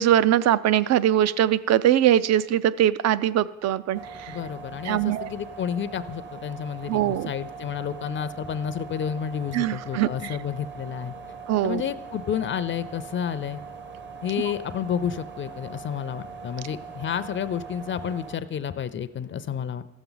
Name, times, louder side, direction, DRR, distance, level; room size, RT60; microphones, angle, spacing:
voice 1, 0.0-4.4 4.8-5.3 6.9-7.3 9.5-10.4 11.5-11.8, right 11 dB, 60° right, 17 dB, 0.4 m, -22 dB
sound 1, 3.9-18.4, right 5 dB, 40° right, 0.8 m, -41 dB
voice 2, 4.3-11.2 11.6-13.6 14.2-19.8, left 8 dB, 40° left, 14 dB, 0.4 m, -30 dB
14.5 x 7.0 x 3.9 m, 1.0 s
cardioid pair, 90°, 30 cm